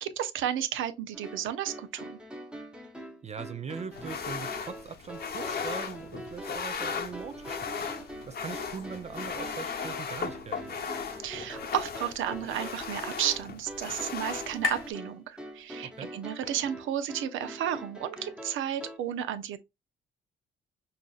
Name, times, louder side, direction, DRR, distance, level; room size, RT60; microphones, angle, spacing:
voice 1, 0.0-2.2 11.2-19.6, right 10 dB, 80° right, 0.6 m, -33 dB
sound 1, 1.1-19.0, equal, 5° right, 0.8 m, -44 dB
voice 2, 3.2-7.7 8.3-10.8 15.8-16.1, right 6 dB, 35° right, 0.4 m, -41 dB
sound 2, 3.9-14.9, left 6 dB, 50° left, 0.8 m, -37 dB
sound 3, 12.3-16.1, left 6 dB, 80° left, 0.7 m, -39 dB
5.4 x 2.5 x 2.3 m
cardioid pair, 90°, 20 cm